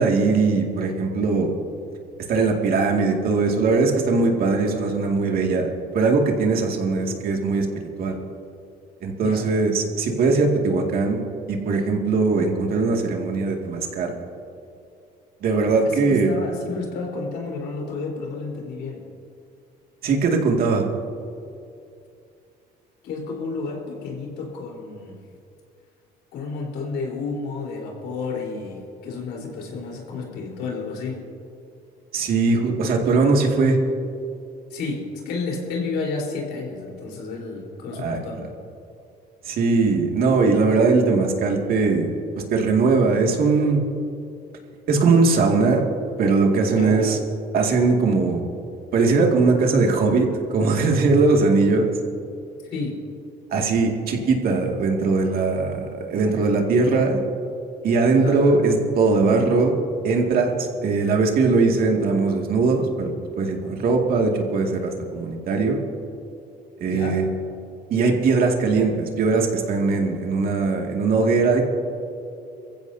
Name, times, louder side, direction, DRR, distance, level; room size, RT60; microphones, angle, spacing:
voice 1, 0.0-1.5 2.3-7.7 8.0-8.2 9.0-11.2 11.5-14.2 15.4-16.3 20.0-20.9 32.1-33.8 38.0-38.2 39.4-42.1 42.5-43.8 44.9-45.8 46.2-47.2 47.5-48.4 48.9-50.3 50.5-51.9 53.5-57.2 57.8-59.7 60.0-65.8 66.8-67.3 67.9-71.6, right 4 dB, 60° right, 1 dB, 2.2 m, -20 dB
voice 2, 9.2-9.5 15.9-19.0 23.0-25.2 26.3-31.2 34.7-38.5 46.7-47.0 52.7-53.0 58.1-58.4 66.9-67.2, left 4 dB, 80° left, -2 dB, 4.2 m, -31 dB
23.0 x 15.0 x 2.8 m, 2.6 s
cardioid pair, 110°, 17 cm